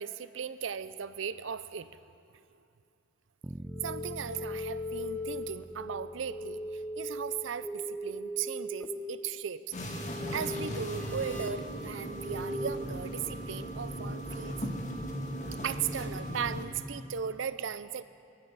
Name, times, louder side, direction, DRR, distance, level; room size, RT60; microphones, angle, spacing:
voice 1, 0.0-2.0 2.3-2.4 3.8-10.0 10.3-14.6 15.6-18.0, right 7 dB, 75° right, 14 dB, 0.5 m, -37 dB
sound 1, 3.4-7.5, right 1 dB, 15° right, 0.3 m, -46 dB
sound 2, 3.7-12.8, left 1 dB, 10° left, 0.8 m, -39 dB
sound 3, 9.7-16.7, equal, 40° left, 1.7 m, -37 dB
27.5 x 13.0 x 4.1 m, 2.5 s
head